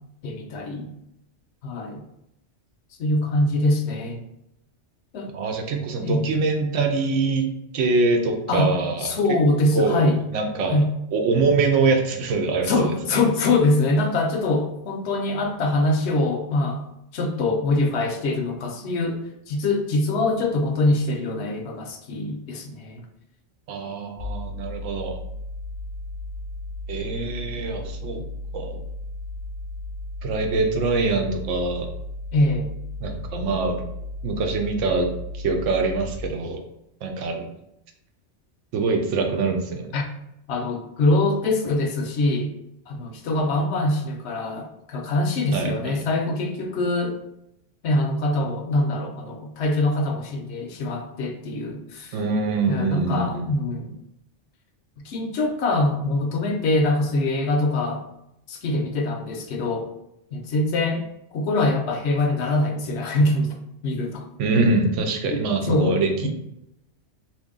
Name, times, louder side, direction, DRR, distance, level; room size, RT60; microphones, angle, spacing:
voice 1, 0.2-0.9 1.6-2.0 3.0-4.2 5.1-5.3 6.0-6.3 8.5-8.7 9.0-10.2 10.6-10.9 12.6-16.8 17.1-23.0 32.3-32.7 39.9-40.0 40.5-42.5 42.9-47.2 47.8-52.2 52.7-53.9 55.0-58.0 58.5-59.9 60.3-61.0 61.3-63.6 63.8-64.2 65.3-66.3, left 2 dB, 70° left, 3 dB, 0.8 m, -23 dB
voice 2, 5.3-9.1 9.7-10.8 11.1-12.9 23.7-25.2 26.9-28.2 28.5-28.8 30.2-31.9 33.0-33.8 34.2-35.1 35.4-36.6 37.0-37.4 38.7-39.9 45.5-45.7 52.1-53.5 64.4-66.3, right 3 dB, 85° right, 3 dB, 0.9 m, -24 dB
sound 1, 24.2-36.2, left 2 dB, 40° left, 0.6 m, -35 dB
2.7 x 2.6 x 3.6 m, 0.83 s
omnidirectional pair, 1.2 m